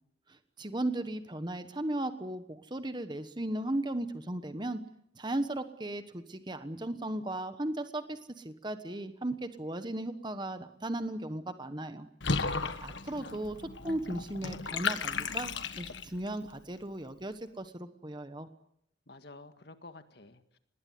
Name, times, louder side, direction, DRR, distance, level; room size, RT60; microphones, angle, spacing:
voice 1, 0.3-4.8 5.2-12.1 12.8-13.6 13.8-18.5, right 1 dB, 25° right, 10 dB, 1.2 m, -36 dB
Water / Bathtub (filling or washing), 12.2-16.3, left 4 dB, 80° left, 1.5 m, -34 dB
voice 2, 12.8-13.7 19.1-20.6, left 2 dB, 60° left, 8 dB, 1.9 m, -52 dB
26.0 x 20.0 x 9.5 m, 0.76 s
head